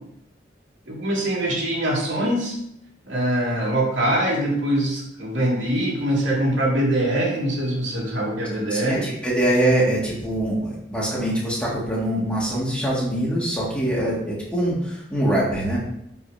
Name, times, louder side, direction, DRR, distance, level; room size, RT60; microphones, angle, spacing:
voice 1, 0.9-2.6 3.0-9.0, right 1 dB, 85° right, -4 dB, 2.7 m, -23 dB
voice 2, 8.7-15.8, right 1 dB, 5° left, -6 dB, 2.3 m, -23 dB
12.0 x 5.5 x 2.9 m, 0.78 s
head